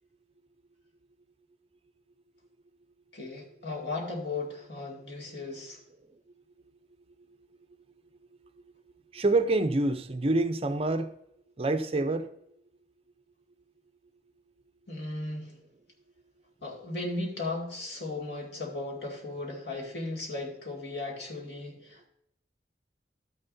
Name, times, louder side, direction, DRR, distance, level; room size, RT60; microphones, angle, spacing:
voice 1, 3.1-5.8 14.9-15.5 16.6-22.1, left 2 dB, 70° left, 2.4 m, -36 dB
voice 2, 9.1-11.1 11.6-12.3, right 2 dB, 35° right, 0.6 m, -26 dB
12.5 x 9.4 x 2.7 m
head